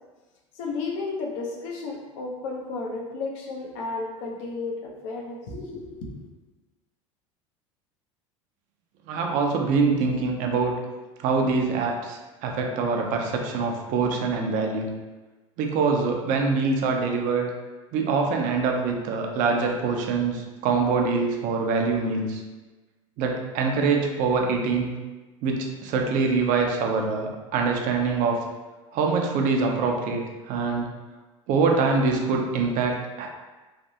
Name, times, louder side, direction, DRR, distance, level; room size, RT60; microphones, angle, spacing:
voice 1, 0.6-6.1, left 3 dB, 65° left, 0 dB, 0.7 m, -33 dB
voice 2, 9.1-10.7 11.2-14.9 15.6-17.5 17.9-22.4 23.2-24.9 25.4-28.4 28.9-30.9 31.5-33.3, right 4 dB, 55° right, 2 dB, 0.6 m, -24 dB
3.3 x 2.6 x 2.7 m, 1.2 s
hypercardioid pair, 80°, 16 cm